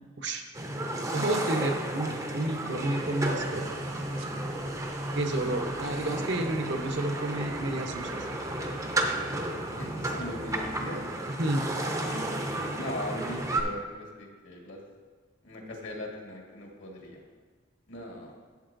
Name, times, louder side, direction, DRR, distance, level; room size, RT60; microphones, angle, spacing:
sound 1, 0.5-13.6, right 1 dB, 15° right, 0.6 m, -33 dB
voice 1, 1.1-3.6 5.1-8.2 11.4-11.6, right 2 dB, 55° right, 4 dB, 0.8 m, -30 dB
sound 2, 2.7-11.2, right 4 dB, 85° right, 0.6 m, -47 dB
voice 2, 9.8-11.0 11.8-14.8 15.4-17.2 17.9-18.3, left 1 dB, 65° left, -1 dB, 1.7 m, -39 dB
12.0 x 8.0 x 2.6 m, 1.5 s
head